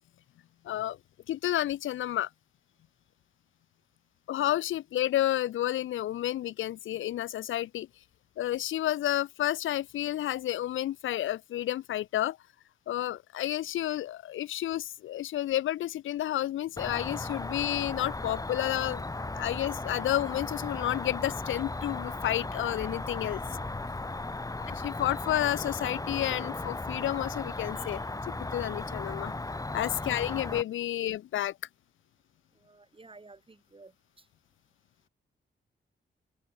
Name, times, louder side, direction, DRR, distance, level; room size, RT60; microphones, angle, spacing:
voice 1, 0.6-1.0 1.3-2.3 4.3-7.9 8.4-12.4 12.9-19.0 19.3-23.4 24.7-29.3 29.7-31.6, left 13 dB, 80° left, 0.4 m, -31 dB
Cricket, 16.8-30.6, left 2 dB, 15° left, 1.2 m, -36 dB
voice 2, 32.5-34.3, right 3 dB, 25° right, 3.0 m, -54 dB
open air
cardioid pair, 75°, 20 cm